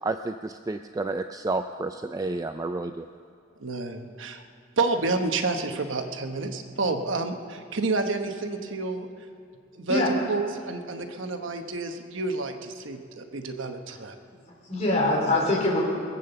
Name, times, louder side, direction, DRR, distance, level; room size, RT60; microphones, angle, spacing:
voice 1, 0.0-3.1, right 2 dB, 20° right, 8 dB, 0.3 m, -30 dB
voice 2, 3.6-4.4 4.8-9.1 9.7-14.1, right 3 dB, 75° right, 6 dB, 1.1 m, -29 dB
voice 3, 14.3-15.8, left 2 dB, 35° left, -3 dB, 4.2 m, -24 dB
21.5 x 8.7 x 6.9 m, 2.6 s
head